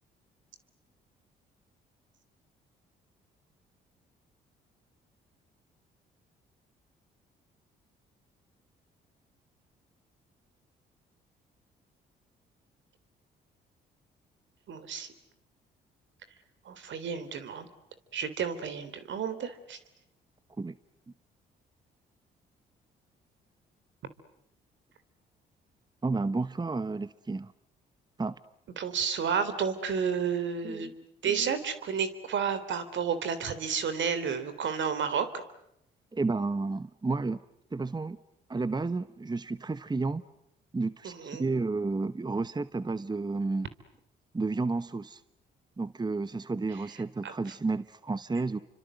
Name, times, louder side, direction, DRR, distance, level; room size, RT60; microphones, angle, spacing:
voice 1, 14.7-15.1 16.7-17.7 18.1-19.8 28.8-30.9 31.2-35.4 41.0-41.5 47.2-47.3, right 6 dB, 65° right, 12 dB, 3.6 m, -31 dB
voice 2, 26.0-27.5 28.2-28.4 30.6-30.9 31.2-31.5 36.1-37.4 37.7-38.2 38.5-40.2 40.7-43.7 44.3-45.2 45.8-48.6, right 3 dB, 20° right, 15 dB, 1.0 m, -31 dB
29.5 x 25.5 x 7.9 m, 0.78 s
hypercardioid pair, 55°, 21 cm